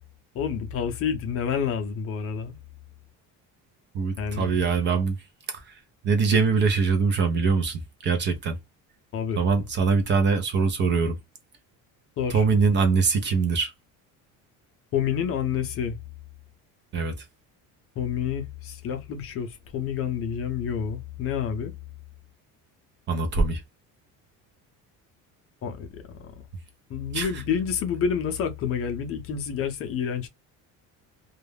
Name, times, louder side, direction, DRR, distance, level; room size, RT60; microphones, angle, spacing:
voice 1, 0.3-2.6 4.2-4.5 9.1-9.4 12.2-12.4 14.9-16.0 18.0-21.7 25.6-26.3 26.9-30.3, left 7 dB, 40° left, 0.6 m, -28 dB
voice 2, 3.9-5.2 5.5-8.6 9.4-11.2 12.3-13.7 16.9-17.3 23.1-23.6 27.1-27.4, right 5 dB, 30° right, 0.5 m, -23 dB
2.3 x 2.0 x 3.2 m
cardioid pair, 170°, 35 cm